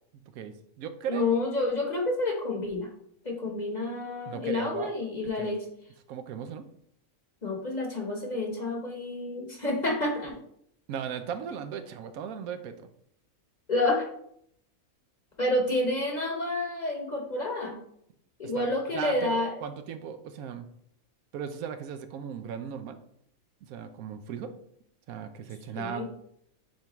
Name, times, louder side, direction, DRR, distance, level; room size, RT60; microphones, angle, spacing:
voice 1, 0.3-1.3 4.3-5.0 5.3-5.5 6.1-6.7 10.9-12.9 18.4-18.7 18.9-20.6 21.3-23.0 23.7-24.5 25.1-26.0, right 8 dB, 80° right, 9 dB, 1.0 m, -37 dB
voice 2, 1.1-2.9 3.2-5.6 7.4-10.4 13.7-14.1 15.4-17.8 18.4-19.5 25.7-26.0, left 2 dB, 35° left, 0 dB, 1.0 m, -29 dB
8.9 x 3.5 x 3.0 m, 0.70 s
omnidirectional pair, 1.5 m